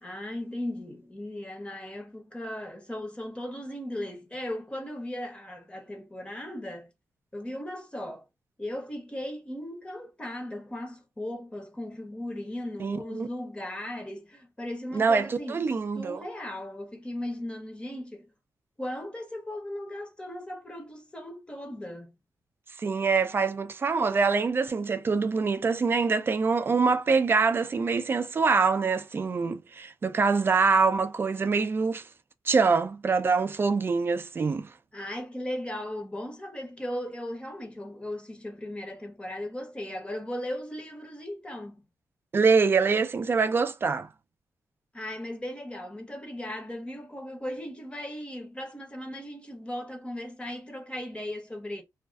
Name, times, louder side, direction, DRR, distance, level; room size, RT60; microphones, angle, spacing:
voice 1, 0.0-6.9 7.3-8.2 8.6-15.7 15.9-18.3 18.8-22.1 34.9-41.9 44.9-51.8, left 1 dB, 15° left, 0.7 m, -37 dB
voice 2, 12.8-13.3 14.9-16.2 22.8-32.0 32.5-34.7 42.3-44.1, right 4 dB, 30° right, 0.4 m, -24 dB
2.4 x 2.4 x 2.2 m
cardioid pair, 115°, 7 cm